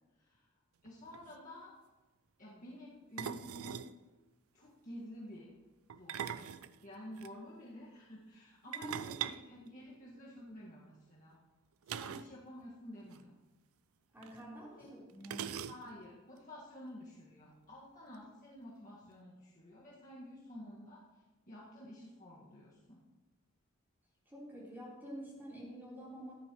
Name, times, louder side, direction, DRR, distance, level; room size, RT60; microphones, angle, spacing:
voice 1, 0.8-1.7 2.4-3.8 4.5-5.5 5.9-6.5 6.8-11.4 11.9-13.4 14.8-15.0 15.6-21.0 21.5-23.0, left 1 dB, 35° left, -7 dB, 1.7 m, -51 dB
sound 1, 0.9-1.4 3.2-4.0 5.9-7.3 8.7-10.4 11.9-12.4 12.6-12.7 13.1-13.2 14.2-14.3 15.2-16.1, right 9 dB, 80° right, 0.4 m, -42 dB
voice 2, 14.1-15.5 24.3-26.3, right 1 dB, 10° right, -7 dB, 3.8 m, -48 dB
14.0 x 10.5 x 3.1 m, 1.2 s
head